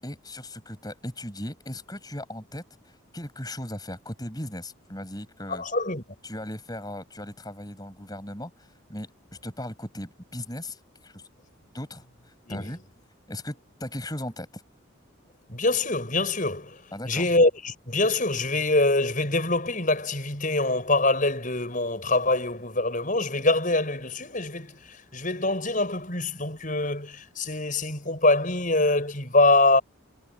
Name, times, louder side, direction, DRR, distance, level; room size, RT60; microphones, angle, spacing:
voice 1, 0.0-5.6 6.2-8.5 8.9-9.1 9.4-11.2 11.7-12.0 12.5-12.8 13.3-14.6 16.9-17.2, left 1 dB, 20° left, 7.8 m, -37 dB
voice 2, 5.5-6.0 12.5-12.7 15.5-29.8, left 2 dB, 40° left, 7.4 m, -24 dB
head